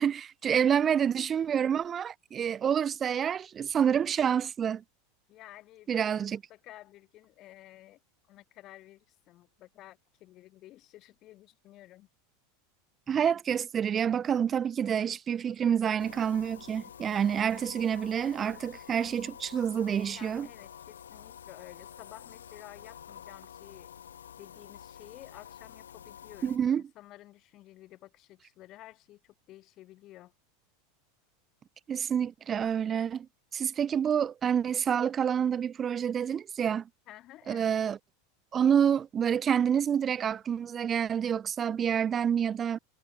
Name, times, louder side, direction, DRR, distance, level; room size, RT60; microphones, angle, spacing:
voice 1, 0.0-4.8 5.9-6.4 13.1-20.5 26.4-26.8 31.9-33.3 33.5-36.9 37.5-38.0 38.5-42.8, right 8 dB, 30° right, 0.8 m, -28 dB
voice 2, 5.3-8.0 8.3-12.1 20.1-23.9 24.4-30.3 37.1-37.7, left 15 dB, 40° left, 5.3 m, -52 dB
sound 1, 16.0-26.6, left 9 dB, 75° left, 3.2 m, -49 dB
figure-of-eight pair, 85°, 0 cm